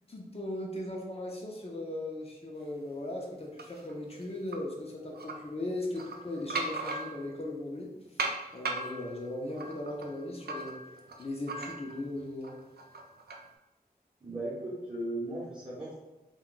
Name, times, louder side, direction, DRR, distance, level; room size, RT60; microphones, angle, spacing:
voice 1, 0.1-8.2 8.5-10.8 11.2-12.6, left 1 dB, 40° left, -2 dB, 0.5 m, -38 dB
sound 1, 3.6-4.6 5.1-5.3 5.8-7.4 8.2-12.1 12.4-13.5, right 3 dB, 80° right, 0.4 m, -38 dB
voice 2, 14.2-16.0, right 1 dB, 30° right, -8 dB, 0.8 m, -37 dB
2.2 x 2.2 x 3.7 m, 1.1 s
wide cardioid pair, 65°, 16 cm